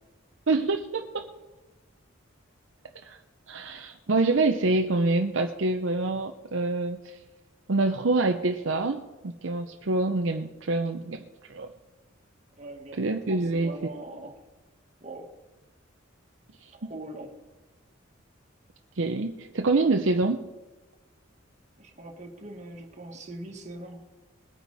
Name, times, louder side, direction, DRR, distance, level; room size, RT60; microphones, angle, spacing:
voice 1, 0.5-1.3 3.0-3.2 3.5-7.2 7.7-11.2 11.5-11.7 13.0-13.7 16.8-16.9 19.0-20.4, right 3 dB, 70° right, 5 dB, 0.7 m, -26 dB
voice 2, 12.6-14.4 15.0-15.3 16.7-17.3 21.8-24.0, right 2 dB, 35° right, 2 dB, 1.9 m, -42 dB
21.0 x 9.2 x 4.2 m, 1.2 s
head